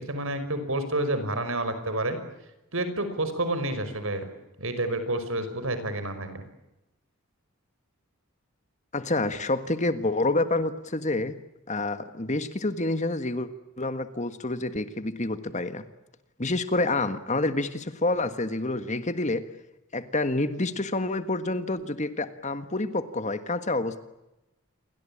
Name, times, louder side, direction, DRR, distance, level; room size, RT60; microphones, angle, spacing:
voice 1, 0.0-2.2 2.7-4.2 4.6-6.4, right 1 dB, 65° right, 10 dB, 5.5 m, -29 dB
voice 2, 8.9-11.3 11.7-13.5 13.8-15.8 16.4-19.4 19.9-24.0, left 2 dB, 35° left, 10 dB, 1.6 m, -28 dB
29.0 x 23.5 x 8.8 m, 0.94 s
head